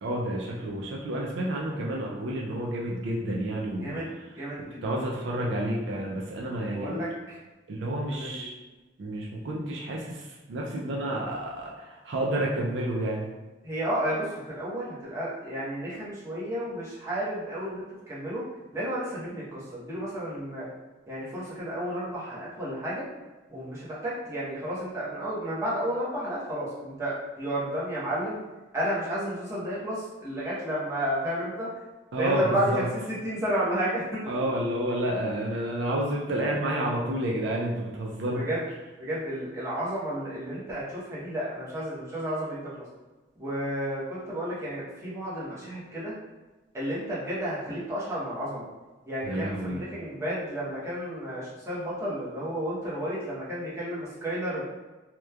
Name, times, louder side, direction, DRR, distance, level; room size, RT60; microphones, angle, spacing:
voice 1, 0.0-4.0 4.8-7.0 7.7-8.5 9.0-11.7 12.0-13.3 32.1-32.8 34.3-38.4 49.2-49.8, right 1 dB, 65° right, -2 dB, 0.4 m, -30 dB
voice 2, 3.8-5.1 6.7-7.4 8.1-8.5 13.6-18.4 18.7-20.7 21.1-23.0 23.5-28.4 28.7-31.7 32.2-34.2 38.3-38.6 39.0-42.7 43.4-46.1 46.7-48.7 49.1-54.6, equal, 15° right, -9 dB, 0.8 m, -32 dB
2.9 x 2.1 x 2.2 m, 1.1 s
head